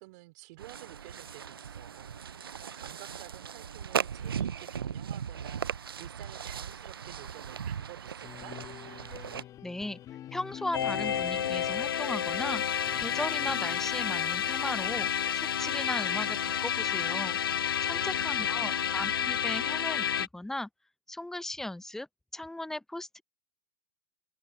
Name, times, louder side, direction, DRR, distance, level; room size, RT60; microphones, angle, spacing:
voice 1, 0.0-8.6 17.9-18.8, right 25 dB, 50° right, 3.3 m, -51 dB
sound 1, 0.6-9.4, right 7 dB, 85° right, 0.8 m, -37 dB
sound 2, 8.2-13.8, left 12 dB, 30° left, 1.7 m, -46 dB
voice 2, 9.6-10.0 10.3-12.6 13.0-15.1 15.3-17.4 17.8-20.7 21.1-22.1 22.3-23.2, left 1 dB, 5° left, 0.8 m, -37 dB
sound 3, 10.7-20.3, left 9 dB, 80° left, 0.6 m, -30 dB
hypercardioid pair, 110°, 12 cm